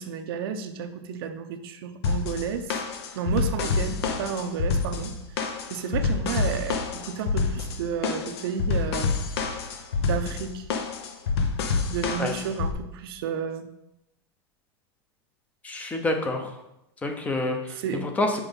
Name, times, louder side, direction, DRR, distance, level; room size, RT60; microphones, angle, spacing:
voice 1, 0.0-2.7 3.2-9.1 10.0-10.7 11.9-13.7 17.8-18.1, right 7 dB, 60° right, 7 dB, 0.7 m, -32 dB
sound 1, 2.0-12.7, left 4 dB, 65° left, 1.0 m, -27 dB
voice 2, 15.6-16.6 17.0-18.4, left 2 dB, 10° left, 5 dB, 0.7 m, -28 dB
5.9 x 5.1 x 5.3 m, 0.87 s
supercardioid pair, 160°, 14 cm